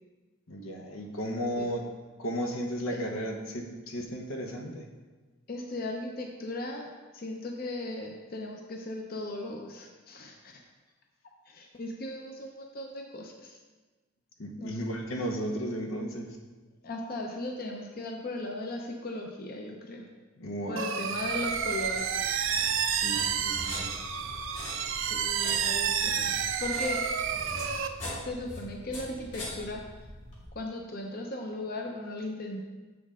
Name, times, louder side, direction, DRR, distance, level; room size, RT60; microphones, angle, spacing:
voice 1, 0.5-1.8 2.2-4.9 14.4-16.4 20.4-20.9 22.9-23.9, equal, 85° left, 2 dB, 1.0 m, -34 dB
voice 2, 5.5-10.6 11.5-13.6 14.6-14.8 16.8-20.0 20.7-22.2 25.1-27.0 28.2-29.8 30.5-32.6, left 2 dB, 45° left, 1 dB, 0.7 m, -37 dB
sound 1, 20.8-27.9, right 7 dB, 75° right, 0.5 m, -30 dB
sound 2, 21.2-30.5, left 1 dB, 65° left, 2.1 m, -43 dB
7.3 x 6.1 x 3.7 m, 1.3 s
head